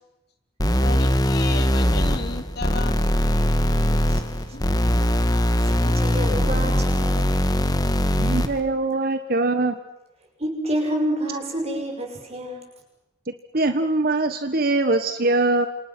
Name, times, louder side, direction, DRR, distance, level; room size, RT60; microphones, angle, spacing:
sound 1, 0.6-8.6, equal, 20° left, 1.8 m, -21 dB
voice 1, 0.8-3.0 3.9-4.0 4.5-4.6, left 3 dB, 55° left, 7 dB, 3.0 m, -33 dB
voice 2, 5.6-7.2 10.4-12.6, right 1 dB, 30° right, 2 dB, 6.6 m, -28 dB
voice 3, 8.2-9.7 13.3-15.7, right 2 dB, 50° right, 9 dB, 1.3 m, -22 dB
28.5 x 27.0 x 6.1 m, 0.95 s
head